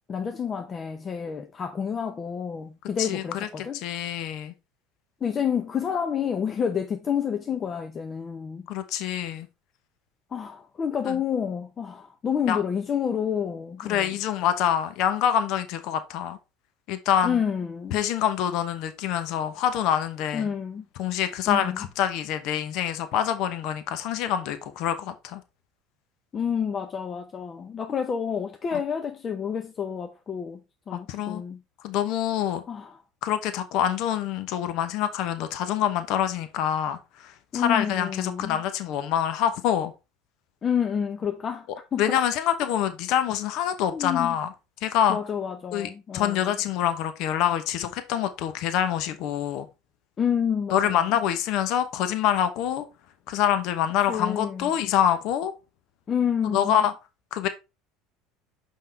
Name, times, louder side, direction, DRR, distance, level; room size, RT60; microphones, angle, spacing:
voice 1, 0.1-3.8 5.2-8.7 10.3-14.2 17.2-18.0 20.3-20.8 21.5-21.9 26.3-30.6 30.9-31.6 32.7-33.0 37.5-38.6 40.6-42.2 43.9-44.4 45.1-46.6 50.2-51.2 54.1-54.9 56.1-56.8, left 7 dB, 35° left, 0.7 m, -29 dB
voice 2, 3.7-4.5 8.7-9.5 11.1-11.2 12.5-12.6 13.8-16.4 16.9-17.4 17.9-20.5 21.0-25.4 28.7-28.8 31.1-31.4 31.8-32.6 33.2-39.9 42.0-44.5 44.8-45.2 45.7-49.7 50.7-52.8 53.3-55.5 56.4-56.9 57.3-57.5, left 10 dB, 65° left, 0.9 m, -26 dB
5.6 x 5.5 x 3.3 m
hypercardioid pair, 85°, 0 cm